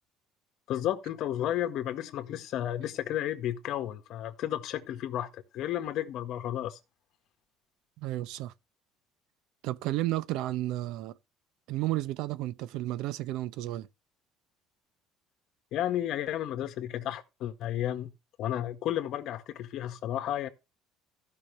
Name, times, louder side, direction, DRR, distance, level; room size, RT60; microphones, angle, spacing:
voice 1, 0.7-6.8 15.7-18.1 18.4-20.5, left 12 dB, 60° left, 1.6 m, -32 dB
voice 2, 8.0-8.5 9.6-11.1 11.7-13.9, right 15 dB, 75° right, 0.7 m, -32 dB
15.5 x 5.9 x 3.3 m
cardioid pair, 125°, 0 cm